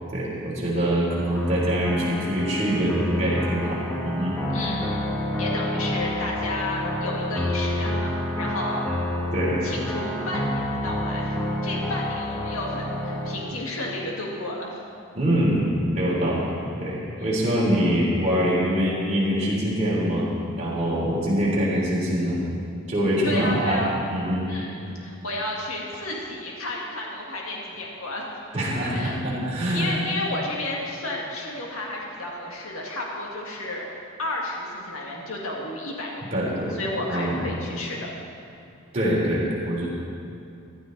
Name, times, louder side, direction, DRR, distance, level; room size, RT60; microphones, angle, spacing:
voice 1, 0.0-4.4 9.3-9.6 15.1-15.6 15.9-16.5 16.8-22.4 22.9-23.8 24.1-24.5 28.5-29.9 36.3-36.7 37.1-37.4 38.9-39.9, equal, 30° right, -6 dB, 3.5 m, -24 dB
sound 1, 1.3-13.4, left 1 dB, 10° left, 1.6 m, -28 dB
voice 2, 4.5-5.0 5.4-8.8 9.6-14.7 17.2-17.3 23.2-24.0 24.5-28.3 28.9-29.2 29.6-36.3 36.7-38.1, left 1 dB, 75° left, -2 dB, 2.0 m, -32 dB
15.0 x 12.0 x 4.0 m, 2.6 s
head